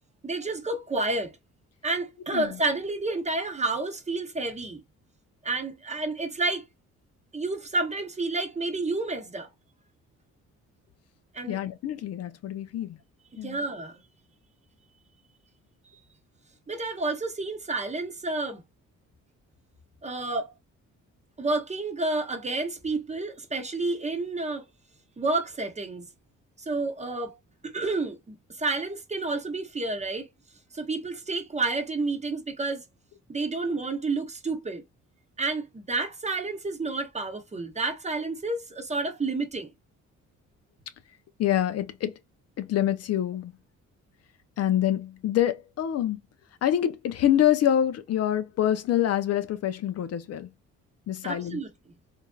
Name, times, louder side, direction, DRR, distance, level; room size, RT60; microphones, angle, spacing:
voice 1, 0.2-1.3 1.8-4.8 5.4-6.7 7.3-9.5 11.3-11.6 13.4-14.0 16.7-18.6 20.0-20.5 21.4-24.7 25.2-26.1 26.6-27.4 27.6-30.3 30.7-32.8 33.3-34.8 35.4-39.7 51.2-51.7, right 3 dB, 20° right, 0.8 m, -30 dB
voice 2, 11.5-13.0 13.4-13.6 41.4-42.1 42.6-43.5 44.6-46.2 46.6-50.5 51.1-51.6, left 11 dB, 55° left, 0.5 m, -26 dB
3.2 x 2.5 x 2.2 m
cardioid pair, 90°, 30 cm